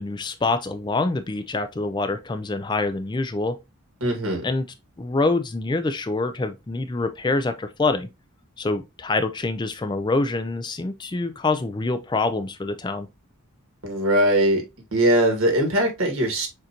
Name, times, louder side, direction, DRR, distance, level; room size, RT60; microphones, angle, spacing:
voice 1, 0.0-3.6 4.4-4.7 5.0-8.1 8.6-13.1, left 3 dB, 20° left, 0.3 m, -25 dB
voice 2, 4.0-4.5 13.8-14.6 14.9-16.5, right 1 dB, 75° right, 1.7 m, -21 dB
6.5 x 2.6 x 2.8 m
head